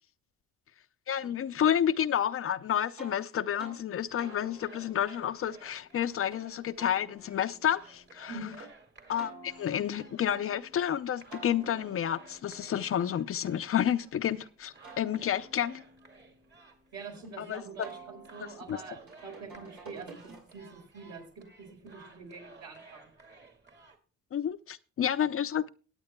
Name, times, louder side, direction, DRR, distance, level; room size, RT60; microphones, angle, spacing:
voice 1, 1.1-8.4 9.1-15.8 17.4-17.6 18.7-18.8 24.3-25.7, left 9 dB, 45° left, 0.6 m, -30 dB
sound 1, 3.0-3.2 3.6-3.8 4.2-6.4 6.8-8.7 9.2-10.9 11.3-14.2 14.6-17.3 17.8-20.8, right 2 dB, 80° right, 4.9 m, -52 dB
sound 2, 4.1-24.0, right 3 dB, 35° right, 2.1 m, -56 dB
voice 2, 8.3-8.6 16.9-23.1, right 3 dB, 65° right, 4.7 m, -45 dB
23.0 x 8.9 x 2.2 m
cardioid pair, 90°, 30 cm